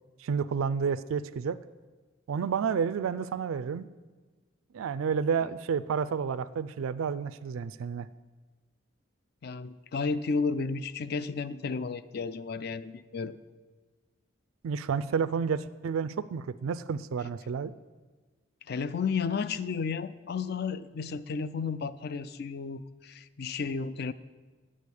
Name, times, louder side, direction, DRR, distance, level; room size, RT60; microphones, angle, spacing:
voice 1, 0.2-1.6 2.3-3.9 4.7-8.1 14.6-17.7, right 6 dB, 85° right, 14 dB, 0.4 m, -30 dB
voice 2, 9.4-13.4 18.7-24.1, left 5 dB, 50° left, 15 dB, 0.4 m, -32 dB
9.0 x 6.4 x 8.4 m, 1.3 s
head